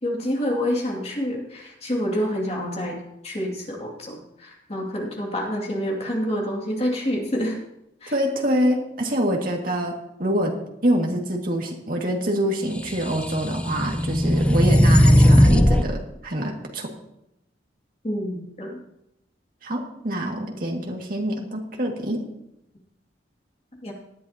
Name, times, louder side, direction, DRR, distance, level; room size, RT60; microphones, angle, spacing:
voice 1, 0.0-3.0 3.2-7.6 8.0-8.1 18.0-18.8 23.8-23.9, equal, 35° left, -1 dB, 2.5 m, -27 dB
voice 2, 8.1-10.6 10.8-16.9 19.6-22.2, equal, 50° right, 0 dB, 2.2 m, -25 dB
sound 1, 12.9-15.9, equal, 5° left, 0.4 m, -17 dB
18.0 x 11.0 x 2.9 m, 0.83 s
head